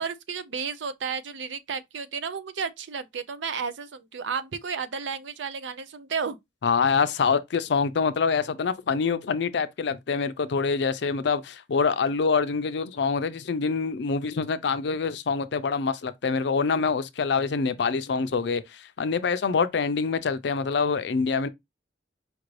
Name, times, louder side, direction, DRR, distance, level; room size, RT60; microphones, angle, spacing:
voice 1, 0.0-6.4, right 6 dB, 75° right, 0.5 m, -32 dB
voice 2, 6.6-21.5, left 5 dB, 65° left, 0.4 m, -25 dB
5.1 x 2.5 x 3.1 m
head